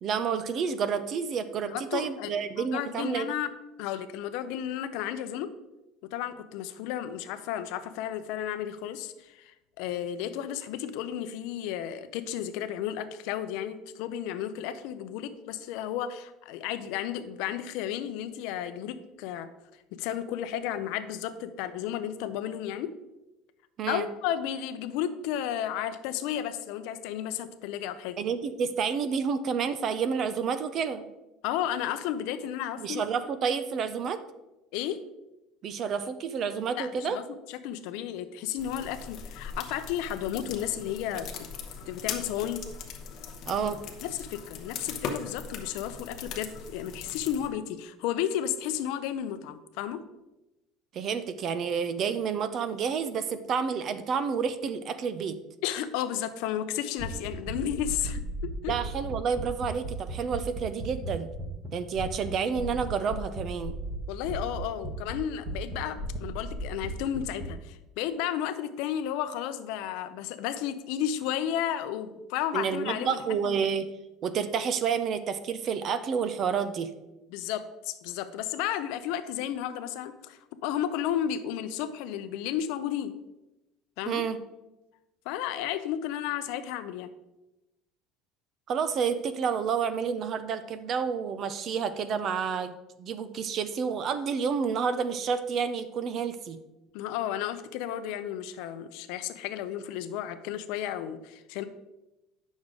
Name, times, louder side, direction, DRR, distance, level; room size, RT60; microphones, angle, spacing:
voice 1, 0.0-3.3 23.8-24.1 28.2-31.1 32.8-34.2 35.6-37.2 43.5-43.8 50.9-55.4 58.7-61.3 61.7-63.8 72.5-73.9 74.2-76.9 84.1-84.4 88.7-96.6, right 6 dB, 35° right, 12 dB, 0.4 m, -29 dB
voice 2, 1.7-2.3 2.6-3.5 3.8-5.5 6.1-19.5 19.9-22.9 23.9-28.2 31.4-33.0 34.7-35.0 36.7-37.2 37.5-41.3 41.9-42.6 44.0-50.0 55.6-58.7 64.1-73.6 77.3-83.1 84.0-84.2 85.3-87.1 96.9-101.6, left 10 dB, 65° left, 11 dB, 0.6 m, -33 dB
sound 1, 38.6-47.5, left 6 dB, 40° left, 0.9 m, -40 dB
sound 2, 57.0-61.7 61.9-62.3 62.6-65.1 65.4-67.5, equal, 15° right, 1.0 m, -35 dB
8.9 x 6.2 x 3.7 m, 0.98 s
cardioid pair, 175°, 0 cm